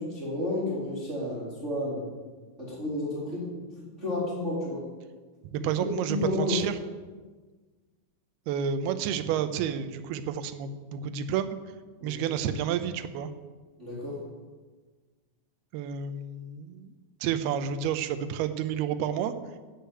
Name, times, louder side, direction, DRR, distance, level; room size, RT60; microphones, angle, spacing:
voice 1, 0.0-2.0 2.6-3.5 3.8-4.8 6.1-6.6 12.0-12.3 13.8-14.2, left 1 dB, 20° right, -6 dB, 2.5 m, -31 dB
voice 2, 5.5-6.7 8.5-11.5 12.0-13.3 15.7-16.9 17.2-19.3, right 8 dB, 85° right, 11 dB, 2.7 m, -30 dB
11.5 x 6.5 x 8.0 m, 1.4 s
omnidirectional pair, 4.5 m